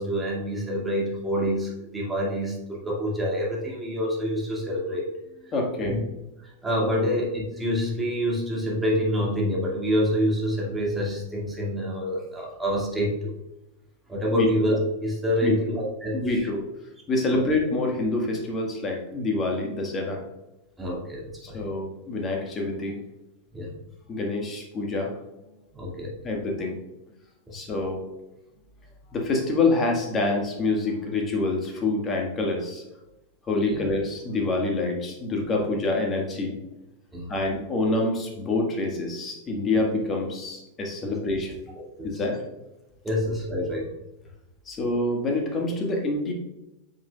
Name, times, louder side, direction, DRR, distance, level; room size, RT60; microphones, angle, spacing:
voice 1, 0.0-5.1 5.8-6.0 6.4-13.4 14.1-16.5 17.3-17.4 20.8-21.6 23.5-23.7 25.7-26.1 27.5-27.6 33.6-33.8 37.1-37.3 41.0-41.1 41.8-42.2 43.0-43.9, equal, 10° right, -4 dB, 2.4 m, -27 dB
voice 2, 5.5-6.0 6.9-7.0 14.3-14.5 15.4-15.6 16.1-16.6 17.1-20.2 21.4-23.0 24.1-25.2 26.2-26.8 27.5-28.0 29.1-32.8 33.5-36.6 37.3-41.6 42.0-42.4 44.7-46.3, left 2 dB, 25° left, 1 dB, 1.8 m, -26 dB
9.3 x 6.6 x 2.5 m, 0.97 s
figure-of-eight pair, 90°, 0 cm